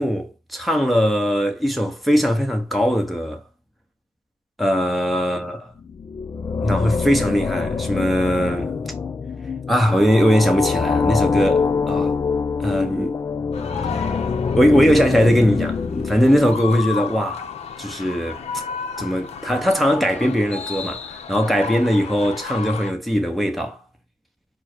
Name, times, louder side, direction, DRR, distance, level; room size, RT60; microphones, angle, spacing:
voice 1, 0.0-3.4 4.6-5.7 6.6-8.7 9.7-12.1 12.6-13.2 13.9-14.1 14.5-17.5 17.8-18.6 19.0-23.8, equal, ahead, 0.9 m, -20 dB
sound 1, 5.8-17.1, left 5 dB, 20° left, 0.3 m, -25 dB
sound 2, 13.5-22.9, left 6 dB, 40° left, 0.8 m, -33 dB
4.4 x 2.2 x 4.5 m
cardioid pair, 110°, 17 cm